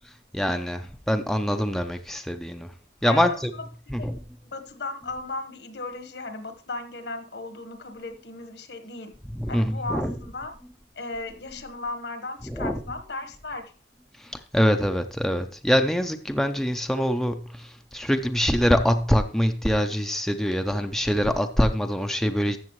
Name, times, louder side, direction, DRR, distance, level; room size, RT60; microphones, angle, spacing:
voice 1, 0.3-2.7 3.0-3.5 3.9-4.2 9.3-10.1 12.4-12.8 14.2-22.6, equal, ahead, 0.5 m, -24 dB
voice 2, 3.0-3.6 4.0-4.1 4.4-9.1 9.5-10.5 10.9-13.7, left 2 dB, 75° left, 1.4 m, -36 dB
13.0 x 7.3 x 3.1 m
head